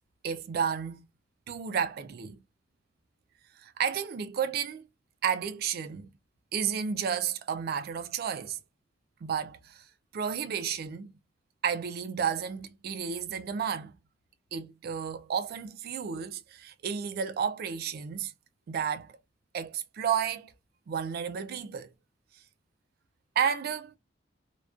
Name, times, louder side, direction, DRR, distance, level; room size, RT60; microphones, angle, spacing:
voice 1, 0.2-1.0 1.5-2.4 3.6-4.8 5.2-6.1 6.5-8.6 9.2-9.8 10.1-11.1 11.6-13.9 14.5-18.3 18.7-19.1 19.5-20.5 20.9-21.9 23.4-23.9, right 7 dB, 55° right, 0.3 m, -32 dB
2.4 x 2.2 x 2.3 m
head